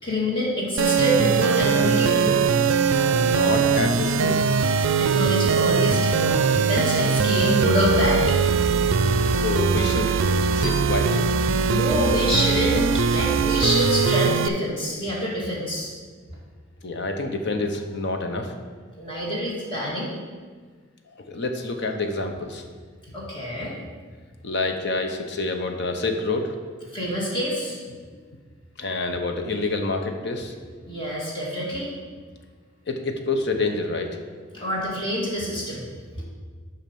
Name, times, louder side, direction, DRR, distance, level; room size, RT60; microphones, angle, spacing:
voice 1, 0.0-2.5 5.0-8.4 11.7-15.9 19.0-20.1 23.1-23.7 26.9-27.8 30.8-31.9 34.5-35.9, equal, 25° left, -5 dB, 2.1 m, -26 dB
sound 1, 0.8-14.5, right 5 dB, 75° right, 0.4 m, -21 dB
voice 2, 3.1-4.4 9.3-10.2 10.5-11.2 16.8-18.5 21.3-22.6 24.4-26.5 28.8-30.5 32.9-34.2 34.5-34.7, left 3 dB, 60° left, 5 dB, 0.8 m, -27 dB
7.4 x 5.6 x 5.4 m, 1.5 s
head